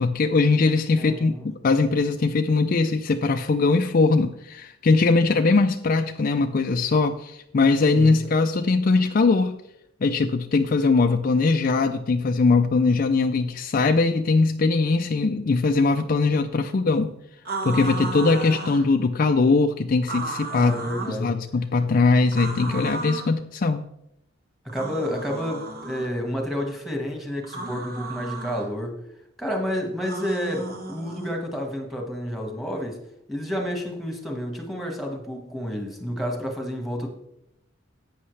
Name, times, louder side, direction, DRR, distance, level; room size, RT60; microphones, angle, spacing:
voice 1, 0.0-1.3 1.6-9.6 10.0-17.1 17.6-20.7 21.1-23.8, left 3 dB, 45° left, 7 dB, 0.4 m, -21 dB
voice 2, 1.0-1.5 7.9-8.2 20.5-21.3 24.6-29.0 29.4-33.0 33.3-37.1, equal, ahead, 2 dB, 1.5 m, -30 dB
sound 1, 17.4-18.9 20.0-21.2 22.3-23.3 24.7-26.1 27.4-28.7 30.0-31.4, right 3 dB, 45° right, 1.4 m, -34 dB
11.0 x 8.6 x 3.3 m, 0.80 s
head